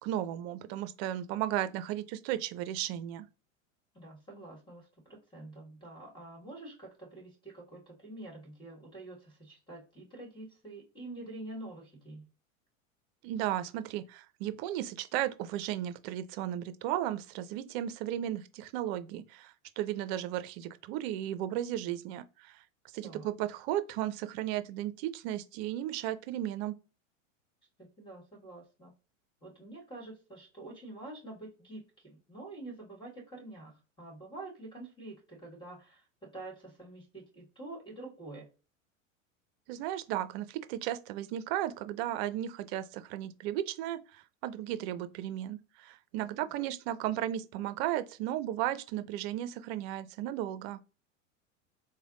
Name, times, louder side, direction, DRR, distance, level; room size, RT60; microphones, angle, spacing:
voice 1, 0.0-3.3 13.2-22.6 22.9-26.7 39.7-50.8, right 12 dB, 50° right, 0.5 m, -35 dB
voice 2, 3.9-4.8 5.3-12.3 23.0-23.3 28.0-28.9 29.4-33.7 34.0-38.5 46.2-46.5, right 2 dB, 10° left, 1.7 m, -47 dB
3.3 x 2.1 x 3.7 m
hypercardioid pair, 105°, 40 cm